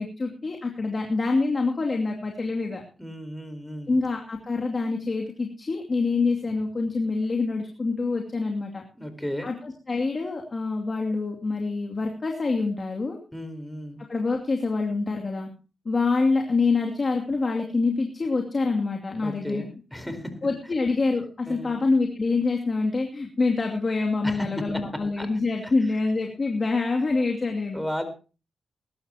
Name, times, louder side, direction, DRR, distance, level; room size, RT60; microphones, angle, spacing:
voice 1, 0.0-2.8 3.9-8.8 9.4-13.2 14.1-15.5 15.8-19.6 20.4-27.8, left 3 dB, 45° left, 1 dB, 2.6 m, -26 dB
voice 2, 3.0-4.0 9.0-9.5 13.3-14.0 19.2-20.3 21.5-21.8 24.2-24.5 25.2-25.3 25.6-25.7 27.7-28.0, equal, 5° left, 9 dB, 4.3 m, -34 dB
21.5 x 12.0 x 2.9 m, 0.34 s
cardioid pair, 65°, 0 cm